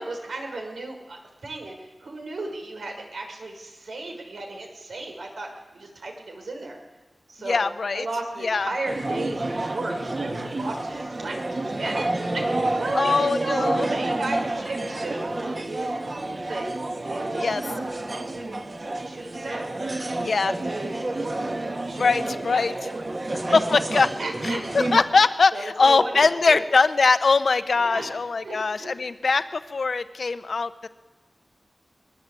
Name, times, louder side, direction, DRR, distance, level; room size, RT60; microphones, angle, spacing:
voice 1, 0.0-6.8 7.3-7.6 7.9-13.6 13.9-16.0 16.4-21.4 21.8-23.0 23.6-23.8 24.2-24.7 25.1-25.2 25.5-26.6 27.7-28.1 28.4-28.9, right 2 dB, 90° right, 3 dB, 5.9 m, -35 dB
voice 2, 7.4-8.1 8.4-8.7 12.9-13.9 17.4-17.6 20.2-20.5 22.0-22.7 23.5-24.1 24.4-30.7, left 4 dB, 65° left, 11 dB, 1.1 m, -21 dB
sound 1, 8.9-25.0, right 2 dB, 40° right, 2.4 m, -29 dB
22.5 x 21.5 x 8.6 m, 1.2 s
wide cardioid pair, 110°, 0 cm